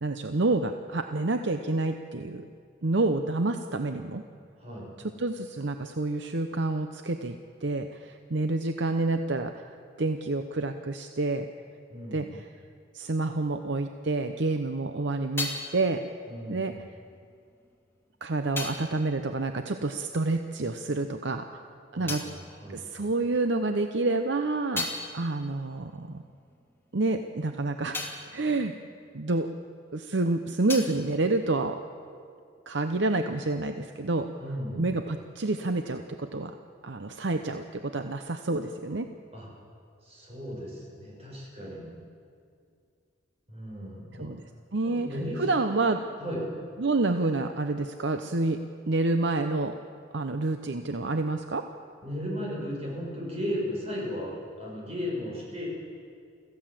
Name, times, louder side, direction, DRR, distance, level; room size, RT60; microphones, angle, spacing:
voice 1, 0.0-2.4 2.8-4.2 5.0-9.7 10.0-11.5 12.1-12.5 12.9-16.0 16.5-16.8 18.2-21.6 21.9-22.2 22.7-24.9 25.1-26.2 26.9-28.7 29.1-29.5 29.9-31.8 32.7-34.3 34.8-36.5 36.8-39.1 44.2-44.4 44.7-45.1 45.4-46.0 46.8-49.8 50.1-51.7, right 2 dB, 65° right, 7 dB, 0.8 m, -28 dB
voice 2, 4.6-4.9 11.9-12.4 16.3-16.9 21.9-23.1 34.4-34.9 39.3-39.5 40.0-41.9 43.5-44.3 44.8-45.8 46.2-46.4 52.0-55.7, equal, 35° right, -3 dB, 6.3 m, -36 dB
sound 1, 14.7-20.6 20.8-23.5 23.9-29.9 30.2-32.2, left 3 dB, 10° left, 2.6 m, -41 dB
25.5 x 15.0 x 7.6 m, 2.3 s
head